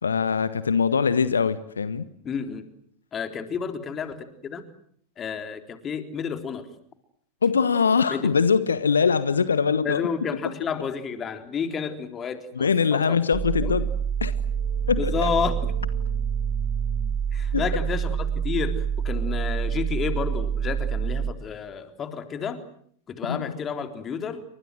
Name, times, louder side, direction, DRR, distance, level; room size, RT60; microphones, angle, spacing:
voice 1, 0.0-2.1 7.4-10.0 12.5-13.9 14.2-14.3 14.9-15.3 17.5-17.6 23.3-23.6, left 6 dB, 70° left, 14 dB, 1.3 m, -22 dB
voice 2, 2.2-2.6 3.1-4.2 4.4-4.6 5.2-6.7 8.1-8.3 9.8-13.2 13.6-13.7 15.0-15.6 17.3-22.6 23.1-24.4, left 6 dB, 25° left, 7 dB, 3.7 m, -30 dB
sound 1, 13.3-21.3, right 7 dB, 30° right, 1.7 m, -27 dB
sound 2, 14.1-19.7, right 7 dB, 60° right, 4.4 m, -42 dB
30.0 x 25.5 x 7.8 m, 0.63 s
figure-of-eight pair, 90°, 0 cm